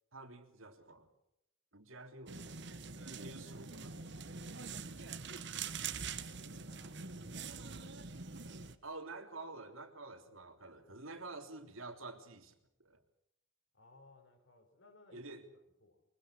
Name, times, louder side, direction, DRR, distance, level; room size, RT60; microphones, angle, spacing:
voice 1, 0.1-1.1 1.7-2.5 2.9-4.0 8.8-12.5 12.8-13.0 15.1-15.4, right 3 dB, 90° right, 6 dB, 3.4 m, -49 dB
sound 1, 2.3-8.8, right 5 dB, 60° right, 1.6 m, -44 dB
voice 2, 6.0-8.1 13.7-16.0, left 2 dB, 65° left, 5 dB, 6.1 m, -63 dB
23.5 x 22.5 x 6.4 m, 0.81 s
head